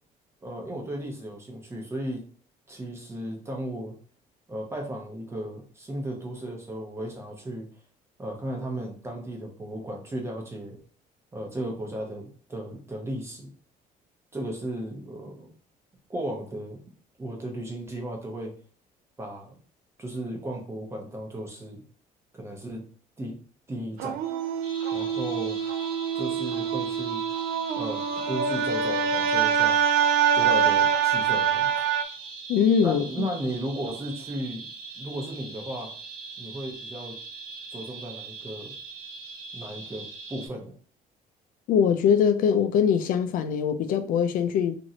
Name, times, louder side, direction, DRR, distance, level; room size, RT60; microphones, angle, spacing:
voice 1, 0.4-2.2 2.7-3.9 4.5-7.7 8.2-10.8 11.3-13.5 14.3-15.5 16.1-16.8 17.2-18.5 19.2-19.6 20.0-21.8 22.3-22.8 23.2-23.4 23.7-24.2 24.9-25.6 26.1-27.2 27.8-29.8 30.3-31.7 32.8-34.6 35.0-35.9 36.4-37.2 37.7-38.7 39.5-40.7, right 1 dB, 15° right, 0.7 m, -35 dB
sound 1, 24.0-32.0, right 7 dB, 80° right, 0.4 m, -25 dB
sound 2, 24.6-40.5, right 3 dB, 65° right, 0.9 m, -41 dB
voice 2, 32.5-33.3 41.7-44.8, left 7 dB, 65° left, 0.4 m, -22 dB
3.0 x 2.6 x 2.7 m
cardioid pair, 155°, 16 cm